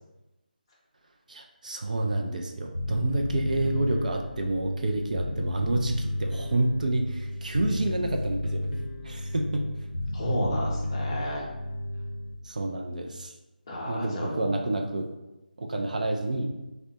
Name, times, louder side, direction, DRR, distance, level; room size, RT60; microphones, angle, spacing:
voice 1, 1.3-8.7 9.0-9.7 12.4-13.3 13.9-15.1 15.6-16.5, right 2 dB, 50° right, 3 dB, 0.3 m, -29 dB
Bass guitar, 2.7-12.3, left 1 dB, 80° left, 0.5 m, -32 dB
voice 2, 10.1-11.5 13.7-14.6, equal, 30° left, -3 dB, 0.6 m, -31 dB
3.3 x 2.1 x 2.7 m, 1.0 s
figure-of-eight pair, 160°, 5 cm